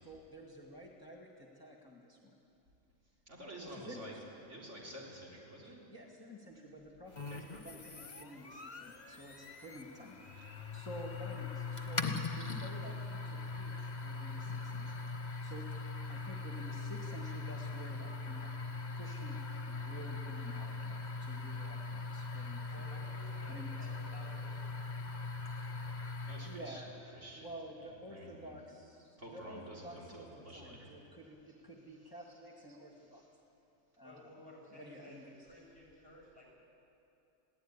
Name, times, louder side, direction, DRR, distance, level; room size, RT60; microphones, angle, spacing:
voice 1, 0.0-2.4 3.6-4.2 5.6-15.0 15.4-15.7 16.1-18.5 18.9-19.4 19.6-22.7 23.5-23.8 26.5-27.0 27.3-33.2 34.0-34.3 34.7-35.3, equal, 15° left, -1 dB, 1.9 m, -51 dB
voice 2, 3.3-4.1 4.5-5.8 7.1-7.4 26.2-26.8 27.2-27.4 28.1-28.5 29.2-30.9, right 1 dB, 70° right, -3 dB, 4.1 m, -49 dB
sound 1, 7.1-26.7, left 3 dB, 35° left, 1.4 m, -41 dB
voice 3, 22.7-24.7 34.0-36.5, left 1 dB, 20° right, -2 dB, 7.9 m, -55 dB
22.5 x 16.5 x 9.7 m, 2.7 s
omnidirectional pair, 1.3 m